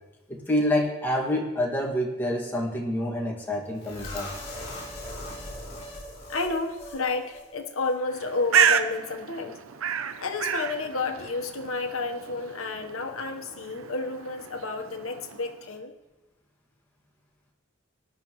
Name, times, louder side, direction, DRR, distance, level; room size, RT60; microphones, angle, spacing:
voice 1, 0.3-4.3, left 1 dB, 10° left, -3 dB, 2.0 m, -27 dB
sound 1, 3.8-7.0 7.3-7.4 7.8-7.9, left 1 dB, 30° left, 3.9 m, -39 dB
voice 2, 6.3-9.6 10.2-15.9, left 3 dB, 85° left, 4 dB, 1.2 m, -31 dB
Bird, 8.1-15.7, right 7 dB, 80° right, 0.7 m, -30 dB
18.0 x 11.5 x 3.1 m, 1.1 s
head